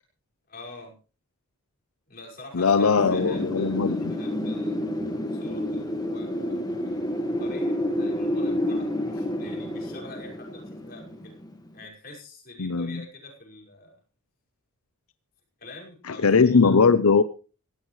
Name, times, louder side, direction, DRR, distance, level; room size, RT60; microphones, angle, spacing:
voice 1, 0.5-1.0 2.1-4.8 5.3-11.3 11.7-14.0 15.6-16.8, left 2 dB, 45° left, -1 dB, 5.7 m, -45 dB
voice 2, 2.5-4.1 12.6-13.0 16.1-17.2, left 5 dB, 85° left, 13 dB, 0.7 m, -20 dB
Wind, 3.0-11.7, left 1 dB, 20° left, 1.8 m, -29 dB
17.5 x 15.5 x 3.3 m, 0.35 s
head